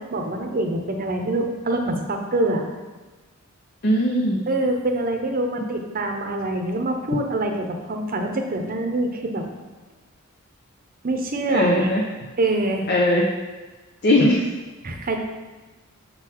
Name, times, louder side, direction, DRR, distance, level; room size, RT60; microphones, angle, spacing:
voice 1, 0.0-2.6 4.5-9.4 11.0-11.9 12.4-12.9 14.8-15.2, right 2 dB, 45° right, 3 dB, 0.8 m, -25 dB
voice 2, 3.8-4.5 11.5-12.0 12.9-13.3 14.0-14.4, left 1 dB, 50° left, -1 dB, 0.7 m, -19 dB
6.9 x 3.9 x 4.5 m, 1.3 s
head